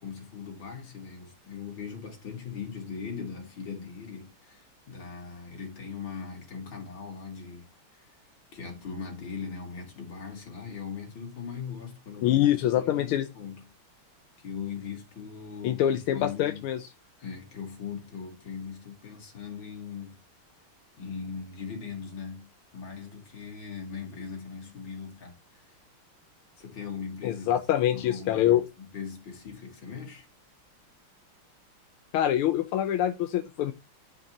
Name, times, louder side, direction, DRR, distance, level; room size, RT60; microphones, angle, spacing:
voice 1, 0.0-8.1 8.5-13.7 14.4-16.6 17.2-20.2 21.0-25.8 26.6-27.7 27.9-30.3, left 6 dB, 60° left, 3.6 m, -40 dB
voice 2, 12.2-13.3 15.6-16.9 27.2-28.6 32.1-33.7, left 11 dB, 85° left, 1.6 m, -25 dB
12.0 x 5.2 x 2.9 m
omnidirectional pair, 2.4 m